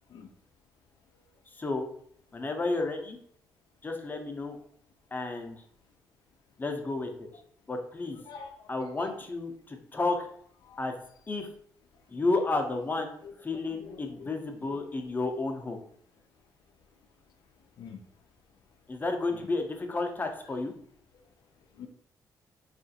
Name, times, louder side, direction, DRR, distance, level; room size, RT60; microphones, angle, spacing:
voice 1, 1.5-1.9 2.3-3.2 3.8-4.6 5.1-5.6 6.6-7.3 7.7-8.2 8.7-10.3 10.8-10.9 11.3-11.5 12.1-15.8 18.9-20.7, left 3 dB, 25° left, 4 dB, 0.6 m, -32 dB
voice 2, 8.0-9.2 10.6-10.8 13.2-14.3 14.7-14.8 17.8-18.0 21.8-21.9, left 6 dB, 75° left, 4 dB, 0.4 m, -47 dB
3.5 x 2.4 x 2.7 m, 0.64 s
cardioid pair, 75°, 7 cm